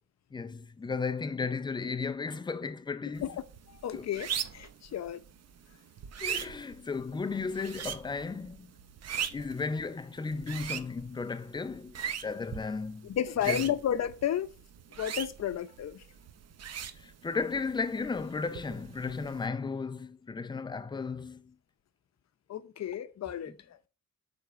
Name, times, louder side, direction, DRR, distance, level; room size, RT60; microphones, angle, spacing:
voice 1, 0.3-3.2 3.9-4.1 6.2-8.7 9.3-11.9 12.2-13.1 13.5-13.7 17.0-21.5, left 4 dB, 15° left, 0.4 m, -34 dB
voice 2, 3.2-5.2 6.3-6.4 13.0-14.5 15.0-16.0 22.5-23.8, left 10 dB, 60° left, 0.7 m, -33 dB
sound 1, 3.2-19.5, right 8 dB, 55° right, 0.7 m, -41 dB
9.0 x 3.5 x 5.7 m
wide cardioid pair, 170°, 30 cm